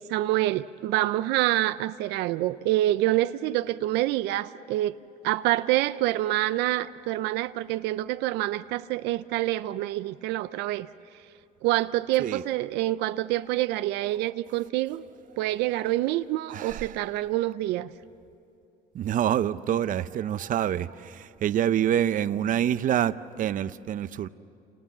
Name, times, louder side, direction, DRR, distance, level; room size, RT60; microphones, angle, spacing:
voice 1, 0.0-4.9 5.2-10.9 11.6-15.0 15.4-17.9, right 15 dB, 90° right, 0.5 m, -26 dB
voice 2, 16.5-17.0 18.9-24.3, right 10 dB, 50° right, 0.7 m, -26 dB
29.5 x 28.0 x 7.3 m
cardioid pair, 110°, 17 cm